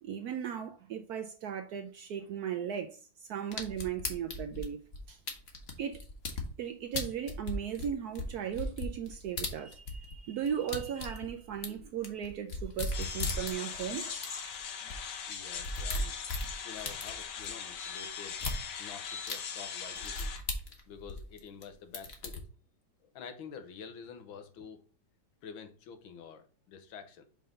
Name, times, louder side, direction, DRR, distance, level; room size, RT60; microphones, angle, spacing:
voice 1, 0.0-4.8 5.1-5.2 5.8-6.0 6.6-14.8, right 8 dB, 70° right, 0.9 m, -37 dB
sound 1, 3.5-6.5 6.9-10.2 10.4-13.8 14.2-14.3 14.5-14.6 14.9-15.0 15.3-17.5 18.3-18.6 19.3-19.4 20.0-21.6 21.9-22.4, left 2 dB, 40° left, 1.1 m, -37 dB
sound 2, 12.9-20.4, left 7 dB, 65° left, 1.4 m, -40 dB
voice 2, 15.3-16.2 16.6-18.4 18.8-20.3 20.9-22.5 23.0-24.8 25.4-27.2, left 6 dB, 85° left, 1.7 m, -48 dB
5.6 x 3.7 x 5.1 m
omnidirectional pair, 2.1 m